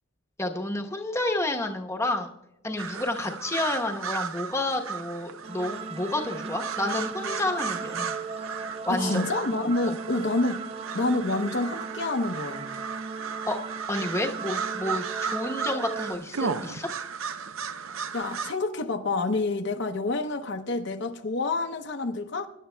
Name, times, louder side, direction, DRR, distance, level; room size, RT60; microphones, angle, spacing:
voice 1, 0.4-2.3 2.6-8.1 8.8-9.3 9.8-10.0 13.5-13.6 13.9-16.9, left 2 dB, 15° left, 0.9 m, -30 dB
sound 1, 2.8-18.5, right 6 dB, 80° right, 0.6 m, -35 dB
sound 2, 5.4-16.2, right 5 dB, 30° right, 0.3 m, -38 dB
voice 2, 8.9-10.6 10.9-12.7 18.1-22.5, left 2 dB, 60° left, 0.7 m, -28 dB
24.0 x 11.0 x 2.2 m
head